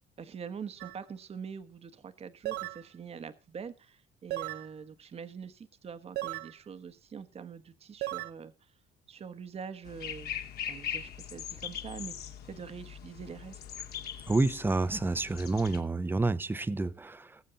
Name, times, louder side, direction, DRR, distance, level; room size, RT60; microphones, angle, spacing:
voice 1, 0.2-8.7 9.1-10.4 10.7-13.6, right 6 dB, 35° right, 1.2 m, -44 dB
sound 1, 0.8-1.0 2.4-2.8 4.3-4.7 6.2-6.5 8.0-8.3, right 16 dB, 80° right, 0.9 m, -35 dB
sound 2, 9.8-15.8, left 9 dB, 70° left, 2.4 m, -41 dB
voice 2, 14.3-17.4, right 3 dB, 10° right, 0.8 m, -29 dB
20.5 x 7.5 x 4.0 m
cardioid pair, 110°, 17 cm